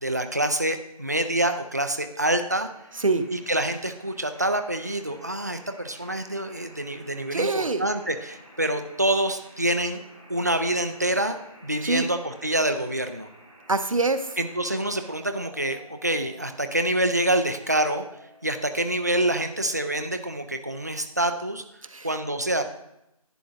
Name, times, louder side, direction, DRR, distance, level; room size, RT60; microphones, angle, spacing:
voice 1, 0.0-2.7 3.3-10.0 10.3-11.4 11.6-13.3 14.4-18.0 18.4-21.6 22.0-22.6, right 1 dB, 30° right, 7 dB, 0.4 m, -26 dB
sound 1, 2.7-19.8, equal, ahead, 1.0 m, -51 dB
voice 2, 7.3-7.8 11.8-12.1 13.7-14.3 21.9-22.1, right 3 dB, 60° right, 10 dB, 0.8 m, -24 dB
11.5 x 9.2 x 2.5 m, 0.83 s
figure-of-eight pair, 170°, 19 cm